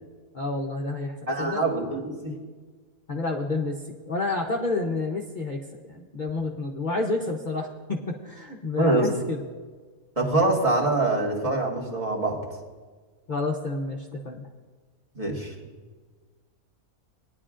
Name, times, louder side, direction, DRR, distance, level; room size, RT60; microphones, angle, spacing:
voice 1, 0.3-1.6 3.1-3.7 4.0-5.6 5.9-9.4 13.3-14.5, left 3 dB, 40° left, -1 dB, 0.8 m, -29 dB
voice 2, 1.3-2.3 8.8-9.1 10.2-12.4 15.2-15.5, right 2 dB, 25° right, -2 dB, 1.8 m, -24 dB
19.5 x 10.5 x 2.5 m, 1.4 s
omnidirectional pair, 1.5 m